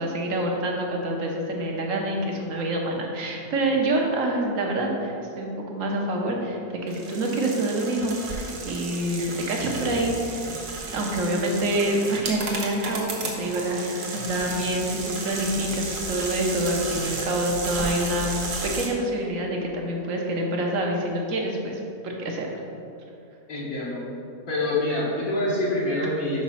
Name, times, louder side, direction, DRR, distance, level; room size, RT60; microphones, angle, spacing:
voice 1, 0.0-10.5 10.9-18.3 18.6-22.5, right 1 dB, 60° right, 0 dB, 1.2 m, -27 dB
sound 1, 6.9-18.9, right 3 dB, 90° right, 1.6 m, -33 dB
voice 2, 23.5-24.0 24.5-26.4, left 1 dB, 65° left, -9 dB, 1.6 m, -26 dB
5.4 x 5.1 x 5.5 m, 2.7 s
omnidirectional pair, 1.6 m